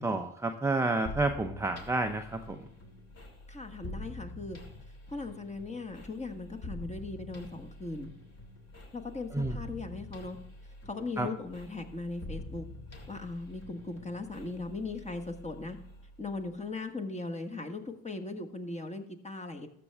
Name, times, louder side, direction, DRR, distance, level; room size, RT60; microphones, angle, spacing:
voice 1, 0.0-2.7 9.3-9.6 11.2-11.3, right 2 dB, 5° right, 4 dB, 0.7 m, -30 dB
sound 1, 1.1-16.7, left 1 dB, 40° left, 2.6 m, -46 dB
voice 2, 3.5-4.6 5.1-8.1 8.9-10.4 10.8-12.6 13.1-15.8 16.2-19.7, left 3 dB, 15° left, 7 dB, 1.5 m, -38 dB
13.0 x 7.6 x 3.5 m, 0.72 s
hypercardioid pair, 80°, 40 cm